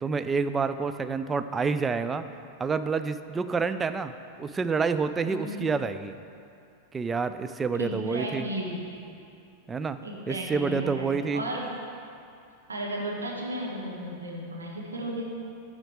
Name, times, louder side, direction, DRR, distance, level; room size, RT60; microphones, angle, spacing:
voice 1, 0.0-2.2 2.6-4.1 4.4-6.2 6.9-8.4 9.7-10.0 10.3-11.4, right 5 dB, 15° right, 10 dB, 0.3 m, -28 dB
voice 2, 5.2-5.6 7.7-9.0 10.0-11.7 12.7-15.4, right 1 dB, 75° right, -2 dB, 1.3 m, -34 dB
9.0 x 5.0 x 4.8 m, 2.5 s
figure-of-eight pair, 90°, 0 cm